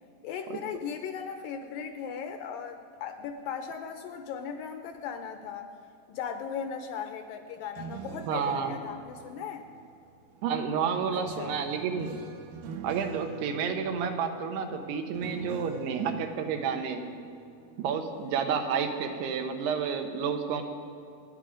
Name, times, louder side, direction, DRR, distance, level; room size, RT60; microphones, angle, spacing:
voice 1, 0.2-5.7 6.1-9.6 11.1-11.5, left 7 dB, 75° left, 7 dB, 2.1 m, -37 dB
sound 1, 7.6-10.5 11.2-18.2 18.5-18.9, right 6 dB, 75° right, 2.3 m, -45 dB
voice 2, 8.3-8.8 10.4-12.2 12.8-17.0 17.8-20.6, right 6 dB, 90° right, 5 dB, 3.3 m, -30 dB
27.0 x 10.0 x 5.1 m, 2.6 s
omnidirectional pair, 4.6 m